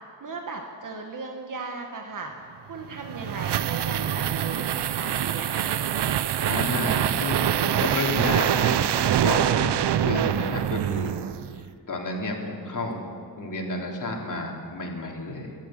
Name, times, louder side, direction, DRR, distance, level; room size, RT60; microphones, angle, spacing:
voice 1, 0.2-6.0, right 3 dB, 50° right, 3 dB, 1.7 m, -37 dB
sound 1, 2.8-11.6, right 10 dB, 90° right, 0.7 m, -25 dB
voice 2, 6.4-11.2 11.9-13.0 13.4-15.6, left 2 dB, 50° left, 0 dB, 3.5 m, -31 dB
28.5 x 12.5 x 7.6 m, 2.3 s
wide cardioid pair, 125°, 39 cm